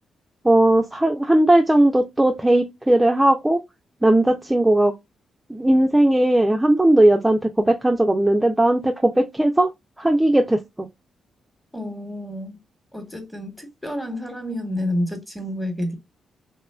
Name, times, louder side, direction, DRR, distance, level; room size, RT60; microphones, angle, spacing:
voice 1, 0.4-3.6 4.0-4.9 5.5-9.7 10.0-10.9, right 1 dB, 10° right, 0.4 m, -18 dB
voice 2, 11.7-12.6 12.9-15.9, left 1 dB, 5° left, 1.1 m, -29 dB
3.0 x 2.2 x 2.2 m
cardioid pair, 70°, 0 cm